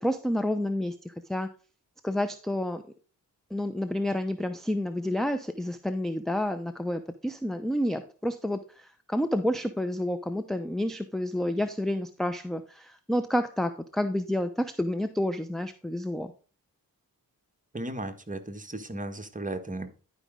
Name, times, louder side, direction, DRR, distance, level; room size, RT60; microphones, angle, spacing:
voice 1, 0.0-1.5 2.0-2.8 3.5-16.3, left 1 dB, ahead, 8 dB, 0.7 m, -29 dB
voice 2, 17.7-19.9, right 1 dB, 20° right, 6 dB, 1.4 m, -35 dB
11.0 x 5.1 x 3.7 m, 0.36 s
cardioid pair, 50°, 37 cm